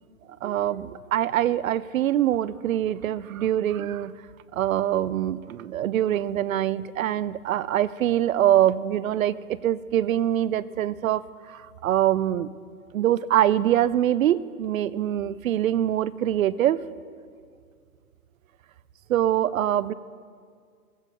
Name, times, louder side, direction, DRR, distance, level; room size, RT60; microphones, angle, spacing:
voice 1, 0.4-4.1 4.5-12.5 12.9-16.8 19.1-19.9, right 11 dB, 65° right, 18 dB, 0.5 m, -24 dB
21.0 x 15.0 x 3.0 m, 2.1 s
hypercardioid pair, 160°, 45 cm